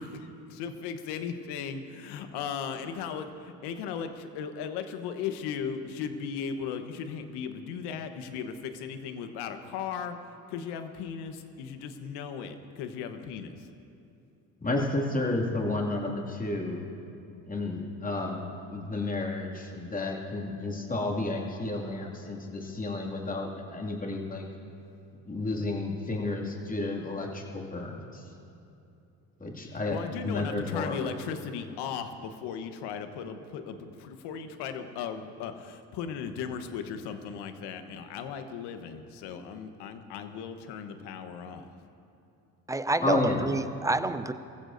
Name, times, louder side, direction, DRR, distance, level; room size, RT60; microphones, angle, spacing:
voice 1, 0.0-10.2 10.5-13.7 29.7-41.9, left 7 dB, 70° left, 8 dB, 1.2 m, -37 dB
voice 2, 14.6-16.8 17.5-24.5 25.3-28.2 29.4-30.0 30.2-31.0 43.0-43.5, left 2 dB, 20° left, -1 dB, 2.3 m, -31 dB
voice 3, 42.7-44.3, right 2 dB, 10° right, 12 dB, 0.5 m, -28 dB
23.0 x 15.0 x 2.7 m, 2.8 s
hypercardioid pair, 65°, 42 cm